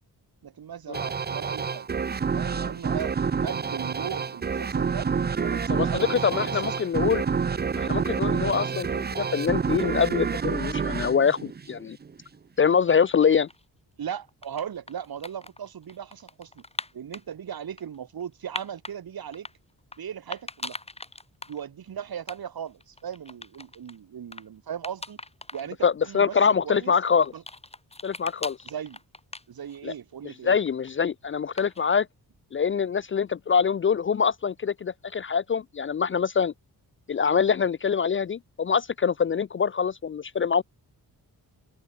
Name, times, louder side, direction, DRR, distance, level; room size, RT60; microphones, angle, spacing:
voice 1, 0.4-1.9 2.3-5.1 5.4-6.7 8.4-8.6 14.0-16.6 16.9-19.5 20.0-20.8 21.5-25.2 25.5-26.9 27.3-27.4 28.6-29.0 29.5-30.6, right 8 dB, 70° right, 3.1 m, -38 dB
sound 1, 0.9-12.2, right 6 dB, 25° right, 0.6 m, -28 dB
voice 2, 5.7-7.2 7.7-12.0 12.6-13.5 25.8-27.3 28.0-28.6 29.8-29.9 30.4-32.1 32.5-36.5 37.1-40.6, left 6 dB, 35° left, 0.4 m, -24 dB
sound 2, 12.7-13.6 14.2-17.2 17.8-19.0 19.3-20.0 20.3-21.6 21.9-22.0 22.2-22.4 22.7-24.0 24.3-24.5 24.8-25.7 26.0-26.1 26.8-30.0 30.2-30.9 31.6-32.0, left 2 dB, 15° left, 4.6 m, -40 dB
wide cardioid pair, 125°, 38 cm